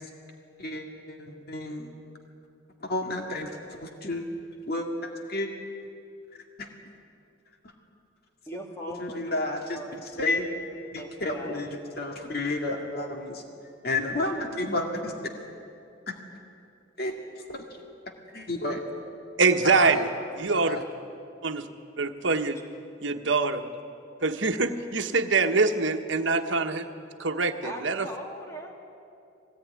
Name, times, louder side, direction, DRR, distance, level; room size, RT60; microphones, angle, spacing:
voice 1, 0.6-1.9 2.8-4.3 4.7-5.5 6.6-6.7 9.0-9.8 10.2-10.5 10.9-11.7 12.0-13.4 13.8-15.1 17.0-17.1 17.5-17.6 18.3-18.8 19.6-20.0 20.5-20.8, left 2 dB, 50° left, 2 dB, 2.2 m, -31 dB
voice 2, 8.5-10.0 11.0-11.7 27.6-28.8, equal, 15° left, 0 dB, 2.6 m, -40 dB
voice 3, 19.4-20.1 20.3-20.8 21.4-21.7 22.0-22.6 23.0-23.7 24.2-26.8 27.2-28.1, right 4 dB, 70° right, 6 dB, 1.3 m, -24 dB
22.0 x 18.0 x 9.6 m, 2.6 s
head